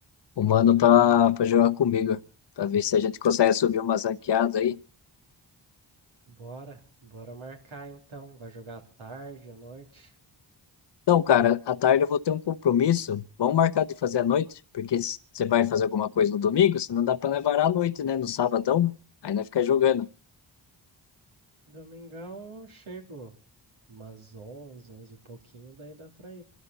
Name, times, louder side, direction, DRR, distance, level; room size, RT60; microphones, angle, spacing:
voice 1, 0.4-2.2 2.6-4.8 11.1-14.5 14.7-18.9 19.2-20.1, left 9 dB, 60° left, 0.9 m, -23 dB
voice 2, 6.3-10.1 21.7-23.3 23.9-26.4, right 3 dB, 80° right, 3.1 m, -44 dB
28.0 x 13.0 x 4.0 m
cardioid pair, 40°, 48 cm